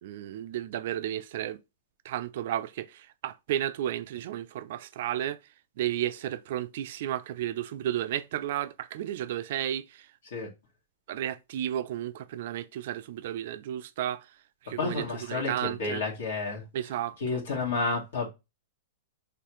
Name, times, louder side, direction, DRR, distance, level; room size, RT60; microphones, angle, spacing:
voice 1, 0.0-1.6 2.0-5.4 5.8-10.1 11.1-14.3 14.6-16.0 16.7-17.4, right 12 dB, 60° right, 0.4 m, -33 dB
voice 2, 14.8-16.6 17.2-18.3, left 3 dB, 75° left, 1.8 m, -31 dB
4.7 x 3.2 x 3.0 m
hypercardioid pair, 140°, 0 cm